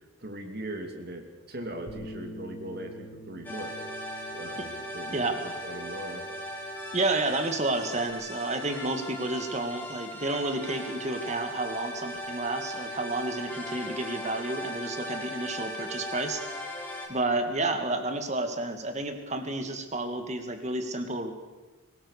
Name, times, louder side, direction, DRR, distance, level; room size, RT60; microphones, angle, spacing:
voice 1, 0.2-3.7 4.3-5.2 5.6-6.2, right 1 dB, 55° right, 4 dB, 2.7 m, -39 dB
Bass guitar, 1.9-8.1, equal, 55° left, 3.8 m, -47 dB
sound 1, 3.4-17.1, equal, 10° left, 3.6 m, -38 dB
voice 2, 5.1-5.4 6.9-16.4 17.1-21.3, right 2 dB, 35° right, 6 dB, 2.1 m, -30 dB
22.5 x 19.0 x 6.7 m, 1.2 s
head